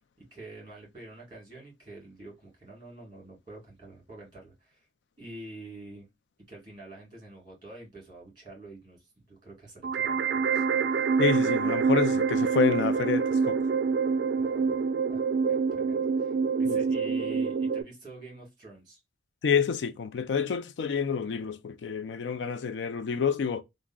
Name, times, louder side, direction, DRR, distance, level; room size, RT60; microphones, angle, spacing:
voice 1, 0.2-4.9 5.2-6.1 6.5-10.6 10.9-11.0 14.3-14.8 15.1-15.2 15.5-19.0, right 1 dB, 25° right, 1.8 m, -47 dB
sound 1, 9.8-17.8, right 5 dB, 70° right, 0.3 m, -26 dB
voice 2, 11.2-13.6 16.7-16.8 19.4-23.6, left 6 dB, 75° left, 0.4 m, -28 dB
3.5 x 2.0 x 2.2 m
head